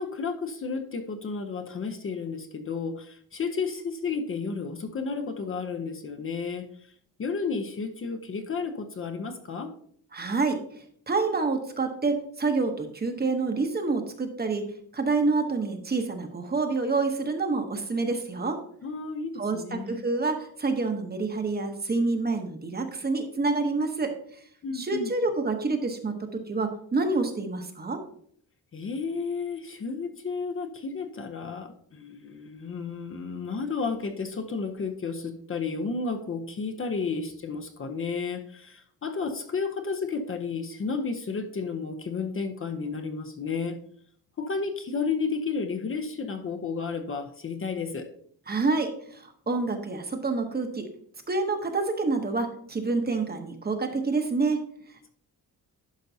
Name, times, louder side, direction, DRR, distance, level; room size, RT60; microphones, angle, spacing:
voice 1, 0.0-6.9 7.2-9.7 18.8-20.1 24.6-25.1 28.7-43.8 44.4-48.1, left 4 dB, 35° left, 5 dB, 0.6 m, -32 dB
voice 2, 10.1-10.6 11.1-18.6 19.4-24.1 24.7-28.0 48.5-50.9 51.3-54.6, right 3 dB, 25° right, 5 dB, 0.9 m, -27 dB
11.5 x 5.2 x 2.7 m, 0.62 s
wide cardioid pair, 160°, 38 cm